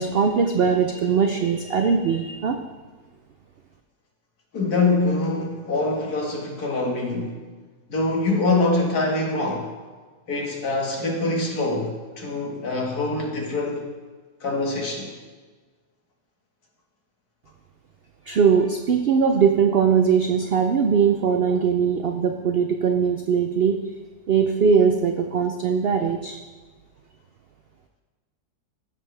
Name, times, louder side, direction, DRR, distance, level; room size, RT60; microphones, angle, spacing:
voice 1, 0.0-2.6 18.3-23.8 24.3-26.4, right 6 dB, 75° right, 5 dB, 0.5 m, -20 dB
voice 2, 4.5-7.4 7.9-9.7 10.3-13.8 14.4-15.1, left 2 dB, 70° left, -1 dB, 2.2 m, -24 dB
15.0 x 6.9 x 3.4 m, 1.4 s
omnidirectional pair, 1.7 m